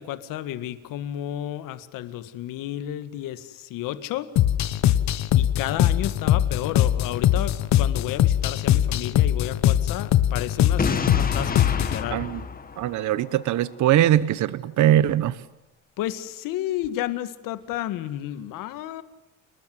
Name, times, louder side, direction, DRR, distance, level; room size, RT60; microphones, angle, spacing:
voice 1, 0.0-4.3 5.3-12.2 16.0-19.0, left 13 dB, 85° left, 12 dB, 1.9 m, -32 dB
sound 1, 4.4-12.0, left 11 dB, 55° left, 1.4 m, -21 dB
Boom, 10.8-13.6, left 5 dB, 25° left, 2.1 m, -29 dB
voice 2, 12.1-12.4 12.8-15.4, right 12 dB, 65° right, 16 dB, 1.2 m, -21 dB
30.0 x 20.5 x 9.7 m, 0.92 s
cardioid pair, 140°, 32 cm